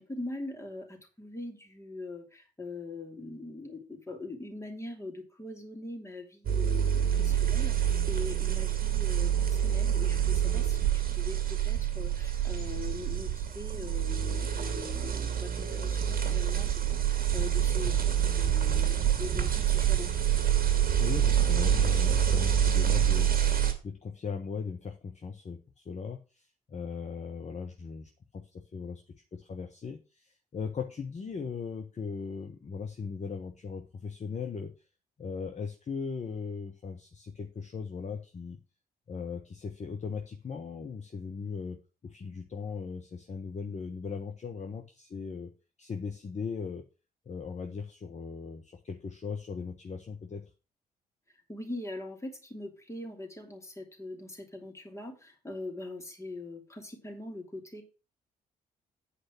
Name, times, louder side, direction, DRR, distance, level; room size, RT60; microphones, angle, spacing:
voice 1, 0.0-17.9 18.2-20.1 51.5-57.8, left 2 dB, 15° left, 2 dB, 2.9 m, -42 dB
sound 1, 6.5-23.7, right 9 dB, 45° right, 2.1 m, -27 dB
voice 2, 21.0-23.3 23.8-34.7 35.2-38.6 39.1-45.5 45.8-46.9 47.3-50.5, left 5 dB, 35° left, 4 dB, 1.2 m, -38 dB
8.7 x 5.0 x 5.9 m, 0.33 s
figure-of-eight pair, 45°, 21 cm